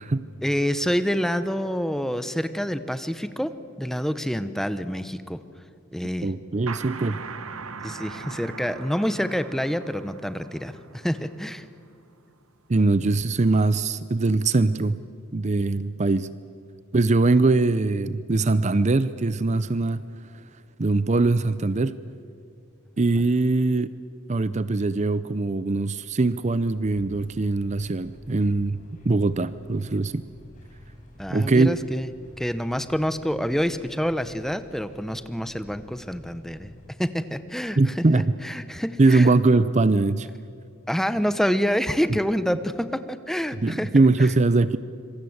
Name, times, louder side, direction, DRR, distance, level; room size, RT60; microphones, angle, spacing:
voice 1, 0.4-3.5 3.8-5.4 5.9-6.3 7.8-11.7 31.2-32.1 32.4-36.7 37.0-39.3 40.9-43.9 44.2-44.3, equal, ahead, 12 dB, 0.8 m, -27 dB
voice 2, 6.2-7.2 12.7-15.0 15.3-16.3 16.9-20.0 20.8-22.0 23.0-23.9 24.3-28.8 29.0-30.3 31.3-31.7 37.8-38.2 39.0-40.3 43.6-44.8, right 3 dB, 35° right, 15 dB, 0.6 m, -21 dB
sound 1, 6.7-12.1, right 5 dB, 90° right, 1.4 m, -40 dB
sound 2, 26.7-36.9, equal, 35° left, 5.7 m, -49 dB
26.0 x 23.5 x 8.0 m, 2.4 s
head